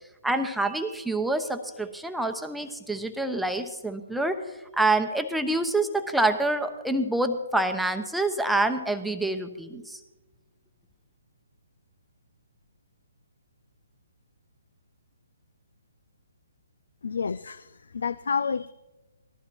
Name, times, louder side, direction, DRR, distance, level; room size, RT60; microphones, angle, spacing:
voice 1, 0.2-4.4 4.7-10.0, right 2 dB, ahead, 6 dB, 0.9 m, -27 dB
voice 2, 17.0-18.7, left 5 dB, 70° left, 17 dB, 0.4 m, -29 dB
19.0 x 14.0 x 4.5 m, 1.1 s
figure-of-eight pair, 140°, 0 cm